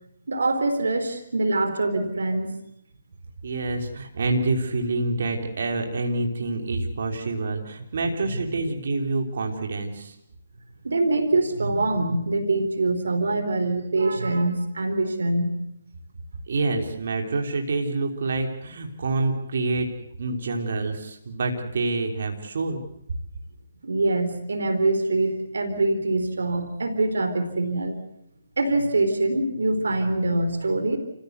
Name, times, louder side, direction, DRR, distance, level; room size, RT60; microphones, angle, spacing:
voice 1, 0.3-2.5 10.8-15.6 23.8-28.0 28.6-31.0, right 2 dB, 90° right, 8 dB, 3.6 m, -24 dB
voice 2, 3.4-10.2 16.5-19.9 20.2-22.8, right 3 dB, 65° right, 3 dB, 3.4 m, -27 dB
28.5 x 16.0 x 8.1 m, 0.77 s
hypercardioid pair, 155°, 0 cm